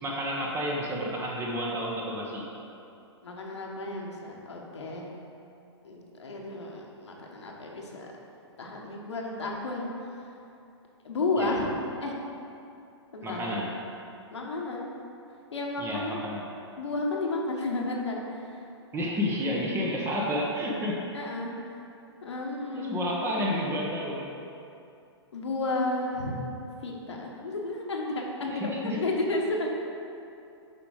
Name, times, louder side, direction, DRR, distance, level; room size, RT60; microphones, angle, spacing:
voice 1, 0.0-2.5 11.4-11.5 13.2-13.7 15.8-16.4 18.9-21.0 22.7-24.3 28.5-29.0, equal, 15° right, -2 dB, 1.1 m, -30 dB
voice 2, 3.2-5.1 5.8-8.1 8.6-9.9 11.0-11.7 12.0-12.1 13.1-13.5 14.3-14.9 15.5-16.2 16.8-18.5 21.1-21.5 22.2-23.2 25.3-26.4 26.8-29.8, left 2 dB, 75° left, -1 dB, 1.3 m, -32 dB
6.9 x 5.1 x 4.9 m, 2.7 s
figure-of-eight pair, 120°, 15 cm